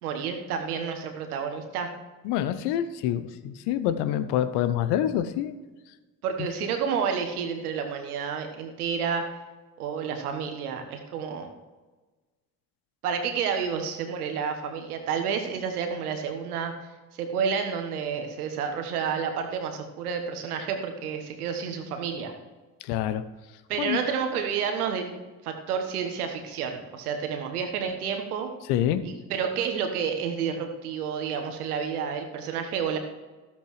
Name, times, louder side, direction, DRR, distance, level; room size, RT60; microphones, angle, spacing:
voice 1, 0.0-1.9 6.2-9.3 9.8-11.5 13.0-16.7 17.1-22.3 23.7-28.5 29.0-33.0, right 6 dB, 75° right, 5 dB, 1.3 m, -30 dB
voice 2, 2.2-5.6 22.8-23.2 23.8-24.0 28.7-29.0, left 11 dB, 60° left, 12 dB, 0.9 m, -26 dB
14.0 x 13.0 x 3.2 m, 1.3 s
figure-of-eight pair, 50°, 45 cm